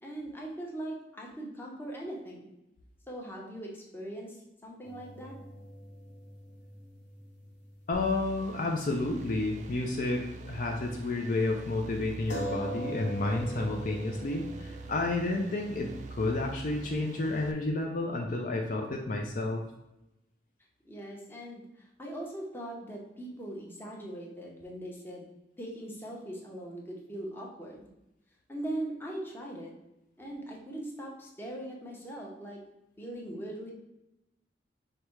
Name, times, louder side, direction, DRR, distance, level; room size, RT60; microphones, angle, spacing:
voice 1, 0.0-2.5 3.1-5.4 20.8-25.3 25.6-27.9 28.5-29.7 30.2-32.6 33.0-33.7, right 1 dB, 10° left, -2 dB, 0.8 m, -40 dB
sound 1, 4.8-8.7 9.0-9.1 12.3-17.5, right 1 dB, 65° left, 1.0 m, -43 dB
voice 2, 7.9-19.6, left 2 dB, 50° left, 1 dB, 0.5 m, -31 dB
sound 2, 7.9-17.5, right 4 dB, 40° right, 0.3 m, -45 dB
5.0 x 2.2 x 4.5 m, 0.89 s
head